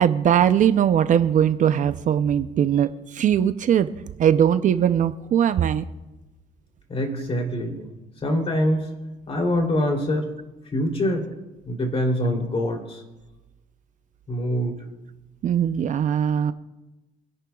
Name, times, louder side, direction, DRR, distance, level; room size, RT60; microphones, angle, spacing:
voice 1, 0.0-3.9 4.2-5.8 15.4-16.5, right 9 dB, 50° right, 11 dB, 0.6 m, -20 dB
voice 2, 6.9-7.9 8.2-8.9 9.3-10.3 10.7-11.3 11.6-13.0 14.3-14.8, left 1 dB, 35° left, 2 dB, 3.1 m, -24 dB
27.0 x 11.0 x 2.3 m, 1.0 s
cardioid pair, 110°, 17 cm